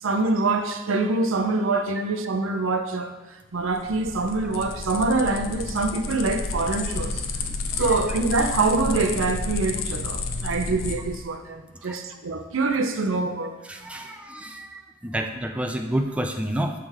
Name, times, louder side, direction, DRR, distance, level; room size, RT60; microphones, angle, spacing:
voice 1, 0.0-3.1 3.5-7.2 7.8-13.6, right 3 dB, 85° right, 7 dB, 0.6 m, -25 dB
sound 1, 3.6-11.3, left 3 dB, 85° left, 0.6 m, -31 dB
voice 2, 7.5-8.0 11.8-12.0 13.7-16.7, right 1 dB, 5° right, 3 dB, 0.3 m, -30 dB
7.2 x 3.4 x 4.6 m, 1.2 s
head